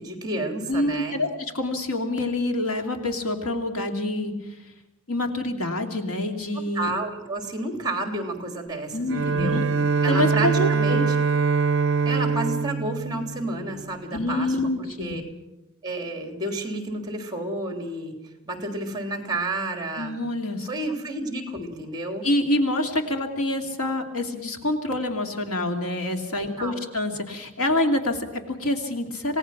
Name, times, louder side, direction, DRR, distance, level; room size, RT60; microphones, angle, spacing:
voice 1, 0.0-1.1 6.7-9.6 10.0-11.1 12.0-15.2 15.8-18.1 18.5-20.1 20.6-22.3 26.6-26.8, right 2 dB, 20° right, 4 dB, 3.4 m, -31 dB
voice 2, 0.7-4.3 5.1-6.9 8.9-9.6 10.1-11.1 14.1-15.2 20.0-20.7 22.2-29.4, left 1 dB, 80° left, 4 dB, 2.6 m, -26 dB
Bowed string instrument, 9.1-14.2, right 5 dB, 60° right, 0.6 m, -24 dB
27.0 x 18.0 x 5.9 m, 0.92 s
head